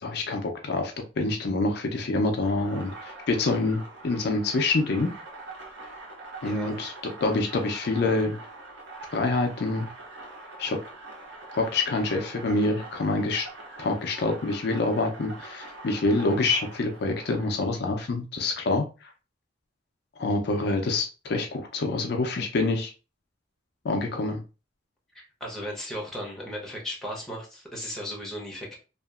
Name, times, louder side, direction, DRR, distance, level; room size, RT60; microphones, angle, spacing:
voice 1, 0.0-5.1 6.4-8.4 9.1-9.9 10.6-10.8 11.5-13.5 13.8-19.1 20.2-22.9 23.8-24.4, left 2 dB, 60° left, 4 dB, 0.4 m, -26 dB
sound 1, 2.4-17.6, right 2 dB, 70° right, 0.9 m, -44 dB
voice 2, 6.4-6.8 25.1-28.8, equal, ahead, -2 dB, 0.8 m, -36 dB
2.8 x 2.4 x 2.3 m, 0.31 s
head